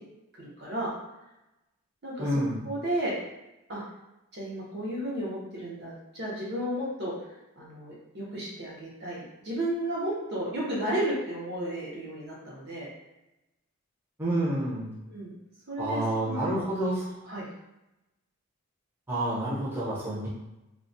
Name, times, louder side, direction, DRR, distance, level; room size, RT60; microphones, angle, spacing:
voice 1, 0.3-0.9 2.0-3.2 3.7-3.8 4.3-7.1 7.6-12.9 15.1-15.3 15.7-16.9 17.2-17.5, right 1 dB, 55° right, -5 dB, 0.7 m, -33 dB
voice 2, 2.2-2.6 14.2-14.9 15.8-17.0 19.1-20.3, right 1 dB, 10° right, -9 dB, 0.7 m, -28 dB
2.2 x 2.2 x 2.5 m, 0.94 s
head